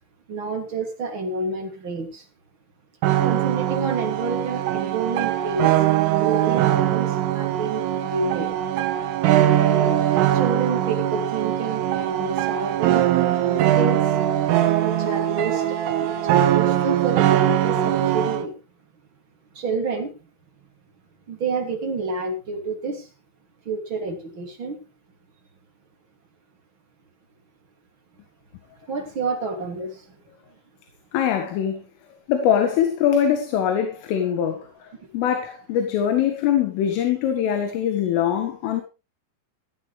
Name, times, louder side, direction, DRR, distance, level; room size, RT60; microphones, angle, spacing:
voice 1, 0.3-2.2 3.2-5.7 6.2-8.5 9.4-9.9 10.3-13.0 13.4-14.0 14.8-18.5 19.5-20.1 21.3-23.0 23.7-24.8 28.9-30.0, right 3 dB, 30° right, 2.7 m, -29 dB
sound 1, 3.0-18.5, right 12 dB, 85° right, 3.9 m, -21 dB
voice 2, 31.1-31.9 32.3-38.8, left 9 dB, 85° left, 4.3 m, -22 dB
16.0 x 14.0 x 3.4 m
omnidirectional pair, 5.6 m